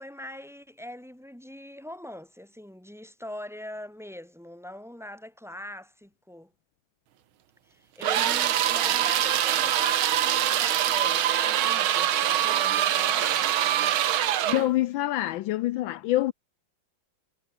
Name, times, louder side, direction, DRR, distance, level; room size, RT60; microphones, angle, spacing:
voice 1, 0.0-6.5 7.7-13.5, left 1 dB, ahead, 2.8 m, -42 dB
sound 1, 8.0-14.7, right 11 dB, 80° right, 1.9 m, -24 dB
voice 2, 14.4-16.3, left 15 dB, 75° left, 1.3 m, -26 dB
omnidirectional pair, 2.2 m